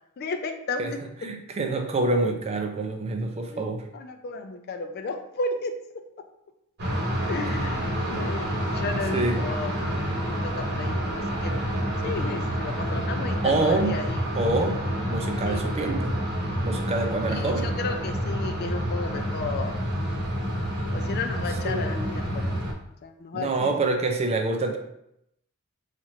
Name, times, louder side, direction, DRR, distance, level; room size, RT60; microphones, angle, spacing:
voice 1, 0.2-1.0 3.5-3.6 3.9-6.3 7.3-8.5 8.7-9.8 10.3-11.5 12.0-14.2 15.4-15.6 17.2-19.8 20.9-22.6 23.0-23.7, left 3 dB, 45° left, 6 dB, 0.3 m, -33 dB
voice 2, 1.2-3.9 7.5-7.6 9.1-9.4 13.4-13.9 14.3-14.8 15.1-16.1 16.6-17.7 21.6-22.2 23.3-24.8, right 2 dB, 30° right, 4 dB, 0.4 m, -26 dB
sound 1, 6.8-22.7, equal, 50° right, 1.0 m, -28 dB
3.0 x 2.5 x 4.2 m, 0.78 s
head